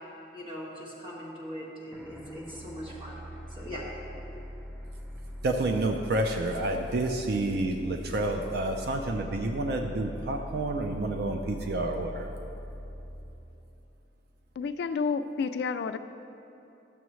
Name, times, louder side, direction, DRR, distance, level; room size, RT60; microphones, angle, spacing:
voice 1, 0.3-3.2 3.5-3.8, equal, 30° right, -6 dB, 1.8 m, -40 dB
sound 1, 1.9-14.6, equal, ahead, 0.6 m, -42 dB
voice 2, 5.4-12.3, right 2 dB, 65° right, 4 dB, 0.5 m, -29 dB
voice 3, 14.6-16.0, left 5 dB, 65° left, 11 dB, 0.3 m, -30 dB
12.5 x 7.0 x 3.1 m, 2.9 s
head